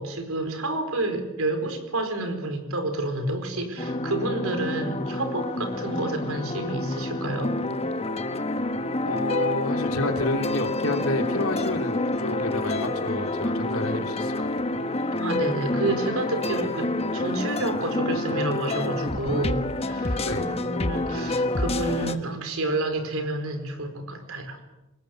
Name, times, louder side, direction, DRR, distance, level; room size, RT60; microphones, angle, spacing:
voice 1, 0.0-7.5 15.2-24.6, right 2 dB, 70° right, 7 dB, 4.7 m, -29 dB
sound 1, 3.8-22.2, left 2 dB, 30° left, 1.2 m, -28 dB
voice 2, 9.0-14.5 20.2-20.5, left 2 dB, 75° left, 4 dB, 3.2 m, -29 dB
24.5 x 20.0 x 7.8 m, 0.99 s
head